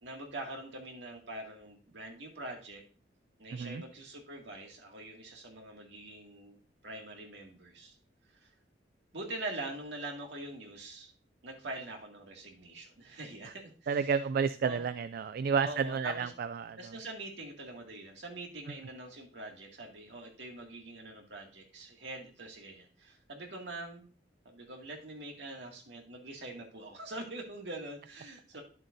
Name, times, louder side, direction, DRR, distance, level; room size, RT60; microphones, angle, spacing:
voice 1, 0.0-2.8 3.4-8.0 8.3-8.5 9.1-11.1 11.4-14.1 14.6-14.8 15.6-16.3 16.8-24.1 24.5-28.6, right 2 dB, 70° right, 1 dB, 2.1 m, -44 dB
voice 2, 3.5-3.8 13.9-17.0, right 6 dB, 55° right, 13 dB, 0.3 m, -31 dB
10.5 x 7.5 x 2.6 m, 0.39 s
head